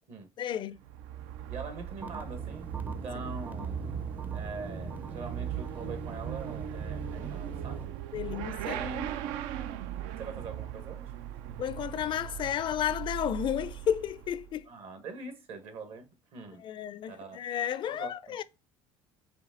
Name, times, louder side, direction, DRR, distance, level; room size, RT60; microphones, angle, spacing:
voice 1, 0.4-0.8 8.1-8.8 11.6-14.7 16.6-18.4, left 10 dB, 45° left, 0.4 m, -32 dB
Motorcycle / Accelerating revving vroom, 0.8-14.6, right 12 dB, 80° right, 0.4 m, -39 dB
voice 2, 1.5-3.9 4.3-7.9 8.6-9.4 10.2-11.1 11.4-11.6 14.7-16.6 17.1-17.4 17.8-18.4, right 3 dB, 60° right, 1.4 m, -43 dB
sound 1, 2.0-7.9, right 2 dB, 15° right, 0.5 m, -41 dB
5.1 x 2.8 x 3.6 m
supercardioid pair, 95°, 12 cm